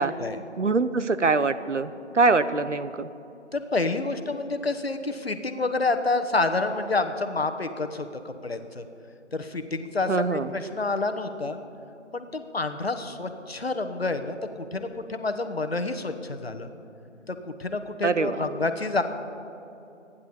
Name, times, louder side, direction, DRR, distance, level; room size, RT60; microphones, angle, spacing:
voice 1, 0.6-1.9 2.1-3.1 10.1-10.5 18.0-18.4, right 4 dB, 70° right, 13 dB, 0.8 m, -23 dB
voice 2, 3.5-8.8 9.3-11.6 12.1-16.7 17.3-19.0, left 3 dB, 55° left, 8 dB, 1.2 m, -28 dB
27.0 x 10.5 x 4.3 m, 2.8 s
figure-of-eight pair, 160°, 37 cm